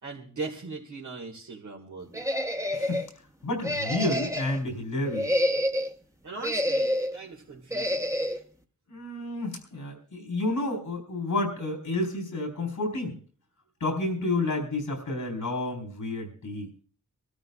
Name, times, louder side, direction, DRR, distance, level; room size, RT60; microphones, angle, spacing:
voice 1, 0.0-2.3 6.2-8.2, right 3 dB, 75° right, -3 dB, 2.1 m, -39 dB
sound 1, 2.1-3.1 3.6-4.6 5.1-5.9 6.4-7.2 7.7-8.4, equal, 10° right, 1.2 m, -28 dB
voice 2, 3.4-5.3 8.9-13.2 13.8-16.7, left 2 dB, 90° left, 3 dB, 4.3 m, -30 dB
25.0 x 13.0 x 2.4 m, 0.43 s
cardioid pair, 45°, 30 cm